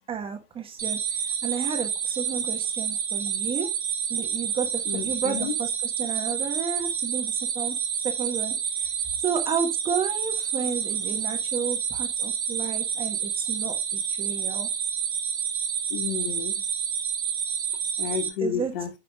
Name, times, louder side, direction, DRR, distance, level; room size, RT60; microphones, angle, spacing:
voice 1, 0.0-3.7 4.1-7.7 8.0-8.5 8.8-8.9 9.2-14.7 18.4-18.7, right 7 dB, 15° right, 1.2 m, -32 dB
sound 1, 0.8-18.3, right 8 dB, 75° right, 3.1 m, -29 dB
voice 2, 4.9-5.5 15.9-16.5 18.0-18.9, left 7 dB, 55° left, 1.4 m, -31 dB
9.6 x 5.5 x 2.3 m
hypercardioid pair, 120°, 34 cm